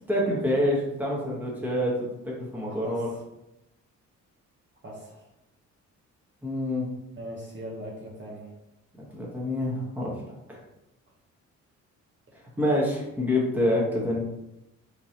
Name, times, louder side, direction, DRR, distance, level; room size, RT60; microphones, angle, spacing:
voice 1, 0.1-3.1 6.4-6.9 9.1-10.1 10.5-10.6 12.6-14.2, left 1 dB, 5° right, -4 dB, 1.2 m, -27 dB
voice 2, 2.7-3.1 4.8-5.2 7.2-8.5, equal, 40° right, -3 dB, 1.0 m, -40 dB
3.7 x 3.1 x 2.8 m, 0.89 s
cardioid pair, 90°, 30 cm